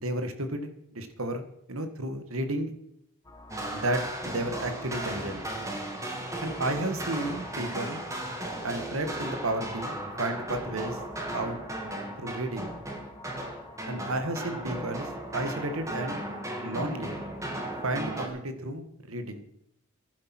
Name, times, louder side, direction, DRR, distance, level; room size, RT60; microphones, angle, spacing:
voice 1, 0.0-1.4 1.7-2.7 3.7-5.4 6.4-8.0 8.6-11.0 11.3-11.6 12.2-12.7 13.9-15.1 15.3-16.2 16.6-17.2 17.8-19.4, right 1 dB, 85° right, 8 dB, 1.9 m, -32 dB
sound 1, 3.2-15.2, left 2 dB, 15° left, 1.8 m, -50 dB
sound 2, 3.5-18.3, right 1 dB, 15° right, 2.3 m, -36 dB
15.0 x 11.5 x 6.1 m, 0.76 s
head